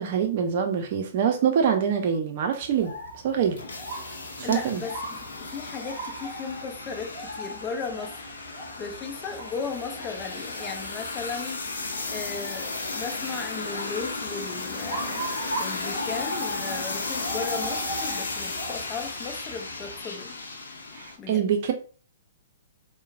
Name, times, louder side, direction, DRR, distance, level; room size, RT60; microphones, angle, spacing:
voice 1, 0.0-2.9 3.2-3.6 4.4-4.8 21.3-21.7, right 7 dB, 50° right, 0.6 m, -24 dB
sound 1, 2.5-21.2, left 3 dB, 70° left, 0.7 m, -35 dB
sound 2, 2.6-20.0, right 1 dB, 25° right, 1.3 m, -39 dB
voice 2, 4.4-8.2 8.8-11.7 12.1-15.2 15.6-20.4 21.2-21.5, left 5 dB, 25° left, 0.6 m, -36 dB
4.5 x 2.2 x 2.5 m
figure-of-eight pair, 120°, 0 cm